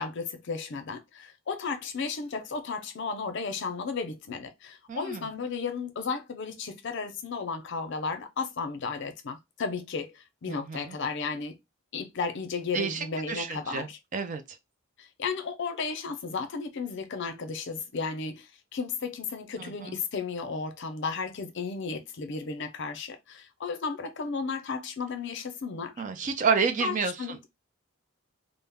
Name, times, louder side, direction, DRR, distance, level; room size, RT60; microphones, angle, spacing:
voice 1, 0.0-11.6 11.9-14.0 15.0-25.9 26.8-27.5, left 4 dB, 60° left, 0.5 m, -34 dB
voice 2, 4.9-5.2 10.5-11.0 12.7-13.9 14.1-14.4 19.6-20.0 26.0-27.5, right 5 dB, 40° right, 0.4 m, -30 dB
2.2 x 2.0 x 3.3 m
head